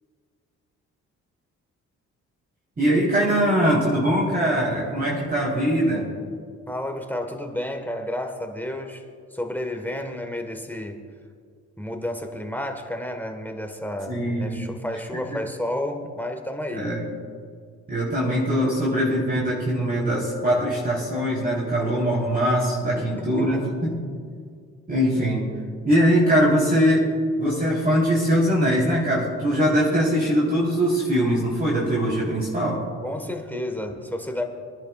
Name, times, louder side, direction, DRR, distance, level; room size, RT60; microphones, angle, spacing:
voice 1, 2.8-6.1 14.1-14.7 15.3-15.4 16.7-17.0 17.9-24.0 24.9-25.5 25.9-27.1 27.4-32.8, equal, 30° right, -5 dB, 3.4 m, -22 dB
voice 2, 6.7-9.0 9.3-11.1 11.8-16.9 23.0-23.6 33.0-34.4, left 1 dB, 5° left, 4 dB, 1.3 m, -31 dB
26.5 x 10.5 x 2.3 m, 2.1 s
cardioid pair, 90°, 30 cm